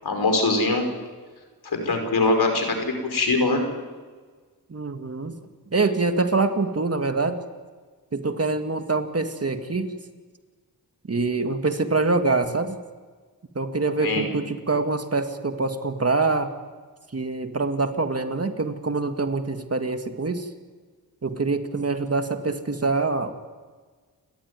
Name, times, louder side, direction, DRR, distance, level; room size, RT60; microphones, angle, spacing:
voice 1, 0.0-0.9 1.6-3.6 14.0-14.2, left 3 dB, 75° left, 4 dB, 5.2 m, -22 dB
voice 2, 4.7-5.4 5.7-7.4 8.1-10.0 11.1-12.8 13.6-16.5 17.1-20.5 21.2-23.5, right 3 dB, 40° right, 7 dB, 2.0 m, -25 dB
29.5 x 13.0 x 9.6 m, 1.5 s
cardioid pair, 65°, 39 cm